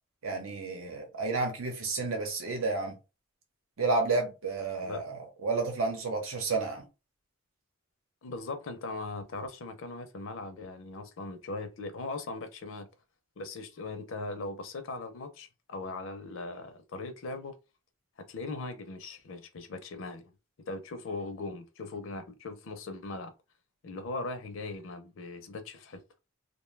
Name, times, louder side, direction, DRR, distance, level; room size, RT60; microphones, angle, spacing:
voice 1, 0.2-3.0 3.8-6.9, right 3 dB, 85° right, 0.9 m, -31 dB
voice 2, 8.2-12.9 13.4-17.5 18.3-20.3 20.7-23.3 23.8-26.0, left 3 dB, 65° left, 0.5 m, -39 dB
2.6 x 2.2 x 3.2 m
head